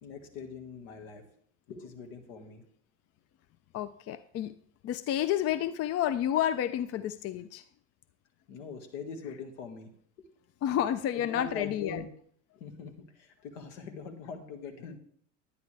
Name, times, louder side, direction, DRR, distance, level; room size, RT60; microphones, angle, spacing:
voice 1, 0.0-1.2 1.7-2.6 8.5-9.9 11.1-12.1 12.6-15.0, left 5 dB, 70° left, 6 dB, 2.0 m, -42 dB
voice 2, 3.7-4.5 4.8-7.6 10.6-12.0, left 11 dB, 40° left, 14 dB, 0.5 m, -30 dB
12.0 x 9.5 x 3.4 m, 0.62 s
hypercardioid pair, 75°, 38 cm